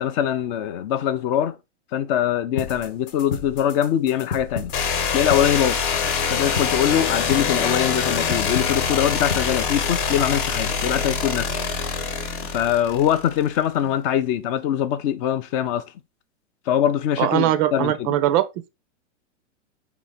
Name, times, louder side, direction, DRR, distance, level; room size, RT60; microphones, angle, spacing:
voice 1, 0.0-1.6 1.9-4.7 5.1-5.8 6.3-11.5 12.5-15.8 16.7-18.2, left 10 dB, 30° left, 0.4 m, -23 dB
sound 1, 2.6-10.6, left 5 dB, 80° left, 1.1 m, -34 dB
sound 2, 4.7-13.5, left 6 dB, 45° left, 1.0 m, -24 dB
voice 2, 17.2-18.7, right 13 dB, 30° right, 0.4 m, -21 dB
4.6 x 2.9 x 4.0 m
hypercardioid pair, 140°, 36 cm